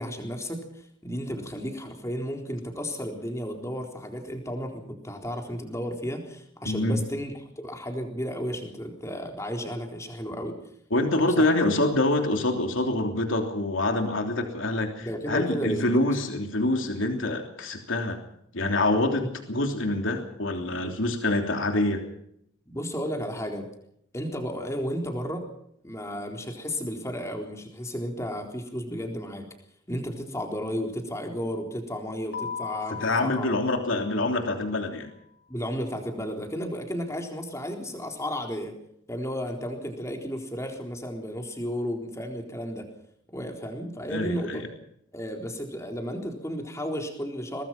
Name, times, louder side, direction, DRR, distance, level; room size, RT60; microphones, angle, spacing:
voice 1, 0.0-10.6 11.2-11.5 15.0-16.0 19.2-19.3 22.7-23.7 24.1-25.5 25.8-29.5 29.9-33.5 35.5-38.7 39.1-42.9 43.3-44.7 45.1-47.6, equal, 15° left, 3 dB, 3.9 m, -33 dB
voice 2, 6.6-7.0 10.9-18.2 18.5-22.0 33.0-35.1 44.1-44.6, left 2 dB, 70° left, 4 dB, 3.2 m, -26 dB
Keyboard (musical), 32.3-34.9, left 6 dB, 50° left, 3.3 m, -38 dB
23.5 x 19.5 x 6.0 m, 0.73 s
head